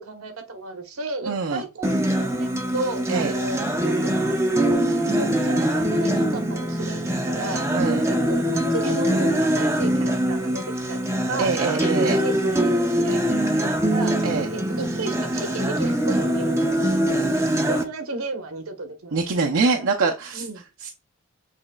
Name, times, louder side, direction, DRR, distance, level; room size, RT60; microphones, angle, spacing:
voice 1, 0.0-4.4 4.6-7.7 8.1-11.5 11.8-14.1 14.5-16.9 17.7-19.2 20.3-20.6, right 3 dB, 80° right, 1.1 m, -33 dB
voice 2, 1.2-1.6 3.1-3.3 7.7-8.0 11.4-12.2 14.2-14.5 19.1-20.4 20.8-20.9, right 4 dB, 65° right, 0.6 m, -24 dB
Acoustic guitar, 1.8-17.8, right 1 dB, 15° right, 0.6 m, -23 dB
7.4 x 3.1 x 2.3 m
head